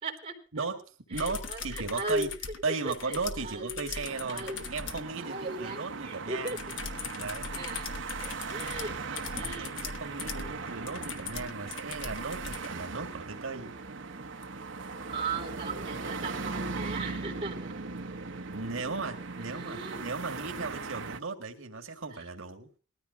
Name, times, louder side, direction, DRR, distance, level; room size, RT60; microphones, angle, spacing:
voice 1, 0.0-0.7 1.1-2.3 2.7-4.6 5.2-6.6 7.5-7.9 8.2-9.7 10.4-10.7 15.1-17.8 19.5-20.1 22.1-22.2, right 2 dB, 30° right, 0 dB, 4.0 m, -38 dB
voice 2, 0.5-2.3 2.6-6.6 7.1-7.6 9.6-13.7 18.5-22.7, right 4 dB, 85° right, 5 dB, 1.8 m, -36 dB
sound 1, 1.1-5.1 6.5-12.7 14.4-14.5, left 6 dB, 65° left, 1.1 m, -40 dB
sound 2, 4.1-21.2, right 4 dB, 65° right, 1.0 m, -39 dB
20.5 x 13.5 x 2.7 m, 0.36 s
head